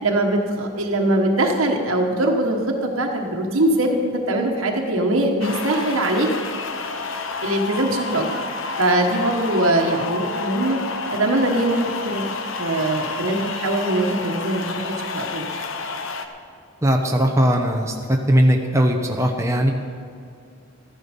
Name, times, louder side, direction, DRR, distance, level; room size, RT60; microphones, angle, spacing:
voice 1, 0.0-6.3 7.4-8.3 8.8-10.8 11.1-12.2 12.6-14.7 15.0-15.4, right 1 dB, 85° right, 1 dB, 1.4 m, -22 dB
sound 1, 5.4-16.3, left 4 dB, 70° left, 0.9 m, -30 dB
voice 2, 16.8-19.7, equal, 15° right, 1 dB, 0.8 m, -19 dB
14.0 x 10.5 x 5.3 m, 2.4 s
head